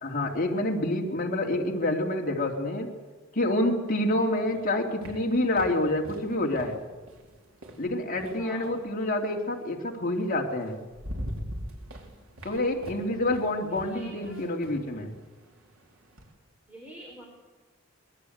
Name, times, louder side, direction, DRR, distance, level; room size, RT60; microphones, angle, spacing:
voice 1, 0.0-2.9 3.3-6.8 7.8-10.8 12.4-15.1, left 1 dB, 45° left, 0 dB, 3.1 m, -27 dB
sound 1, 4.3-8.9 10.2-10.3 10.7-16.3, equal, 75° right, 4.4 m, -42 dB
voice 2, 8.4-8.8 12.4-13.2 13.8-14.5 16.7-17.2, right 1 dB, 10° right, 0 dB, 4.3 m, -48 dB
24.5 x 20.5 x 8.1 m, 1.3 s
head